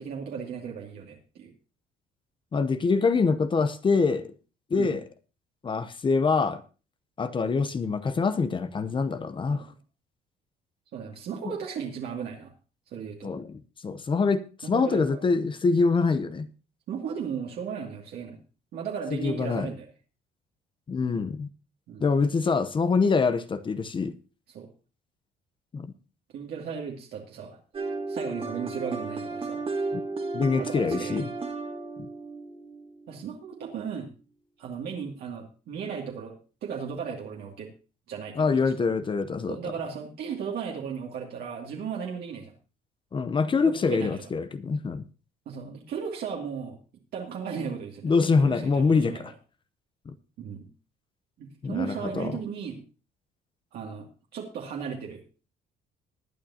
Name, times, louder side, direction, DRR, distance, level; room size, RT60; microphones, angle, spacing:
voice 1, 0.0-1.5 4.7-5.0 9.4-9.6 10.9-12.5 12.9-13.3 14.6-15.2 16.9-18.4 18.7-19.9 21.9-22.0 24.5-24.7 26.3-27.6 28.1-29.6 30.6-31.3 33.1-34.1 34.6-36.3 36.6-37.7 38.1-38.6 39.5-42.5 43.6-44.3 45.5-46.8 47.1-48.1 48.4-49.2 50.4-50.7 51.4-52.8 53.7-55.2, right 7 dB, 70° right, 2.4 m, -36 dB
voice 2, 2.5-4.3 4.7-5.0 5.6-6.6 7.2-9.7 11.4-11.5 13.2-16.5 19.1-19.7 20.9-21.5 22.0-24.2 25.7-25.9 29.9-30.0 30.3-31.3 38.3-39.6 43.1-45.0 48.0-49.3 50.1-50.2 51.6-52.4, left 4 dB, 30° left, 0.8 m, -25 dB
sound 1, 27.7-33.6, right 3 dB, 35° right, 1.8 m, -34 dB
20.0 x 9.1 x 2.9 m
cardioid pair, 110°, 17 cm